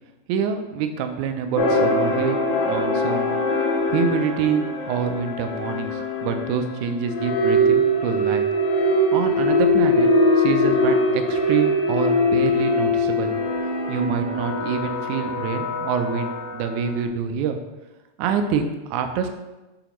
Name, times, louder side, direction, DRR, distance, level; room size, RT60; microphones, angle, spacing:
voice 1, 0.3-2.4 2.7-3.4 3.9-8.5 9.1-10.1 10.4-13.3 13.9-17.6 18.2-19.3, right 7 dB, 85° right, 7 dB, 2.0 m, -26 dB
sound 1, 1.6-16.9, left 1 dB, 90° left, 1.0 m, -22 dB
6.9 x 4.8 x 3.0 m, 1.1 s
omnidirectional pair, 3.3 m